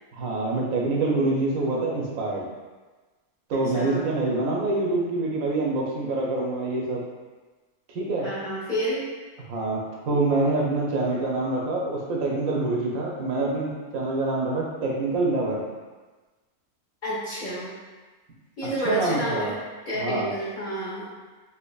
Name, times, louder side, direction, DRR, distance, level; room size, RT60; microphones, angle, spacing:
voice 1, 0.1-2.5 3.5-7.0 7.9-8.3 9.5-15.6 18.8-19.5 20.0-20.3, right 2 dB, 75° right, -2 dB, 1.1 m, -26 dB
voice 2, 3.5-4.0 8.2-9.0 17.0-17.7 18.6-19.6 19.9-21.1, right 1 dB, 35° left, -10 dB, 1.2 m, -29 dB
4.4 x 2.8 x 2.3 m, 1.3 s
omnidirectional pair, 1.5 m